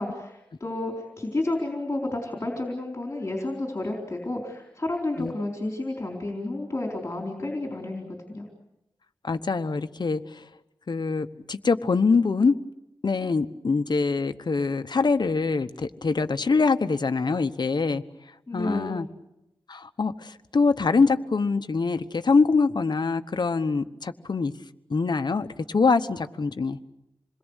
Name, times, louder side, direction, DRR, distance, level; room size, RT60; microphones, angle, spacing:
voice 1, 0.0-8.5 18.5-19.0, left 2 dB, 30° left, 1 dB, 4.2 m, -31 dB
voice 2, 9.2-10.5 10.9-12.6 13.0-18.0 18.5-19.1 19.7-24.5 24.9-26.8, left 4 dB, 55° left, 9 dB, 1.1 m, -24 dB
27.5 x 21.5 x 8.2 m, 0.90 s
wide cardioid pair, 110°, 9 cm